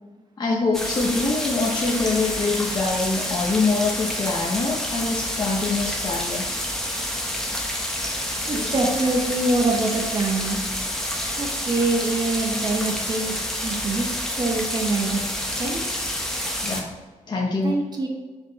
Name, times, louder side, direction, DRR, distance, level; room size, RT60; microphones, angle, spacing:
voice 1, 0.4-6.5 8.5-8.7 16.6-16.9 17.3-17.7, left 3 dB, 35° left, -2 dB, 0.9 m, -24 dB
sound 1, 0.7-16.8, equal, 5° left, 1.1 m, -28 dB
voice 2, 8.5-10.6 11.4-13.3 13.6-15.2 15.6-15.8 17.6-18.1, right 2 dB, 35° right, 1 dB, 0.9 m, -24 dB
6.2 x 5.4 x 3.9 m, 1.3 s
wide cardioid pair, 140°, 13 cm